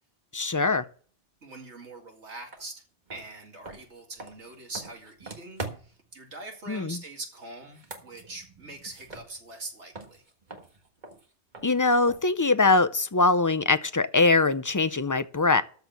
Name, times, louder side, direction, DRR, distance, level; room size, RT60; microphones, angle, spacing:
voice 1, 0.3-0.8 6.7-7.0 11.6-15.6, left 3 dB, 30° left, 0.3 m, -22 dB
voice 2, 1.4-2.8 3.1-10.2, right 2 dB, 75° right, 2.6 m, -43 dB
sound 1, 2.5-2.6 3.1-6.1 7.6-9.7 9.9-13.0, right 3 dB, 45° right, 1.6 m, -43 dB
13.5 x 4.5 x 8.1 m
omnidirectional pair, 1.1 m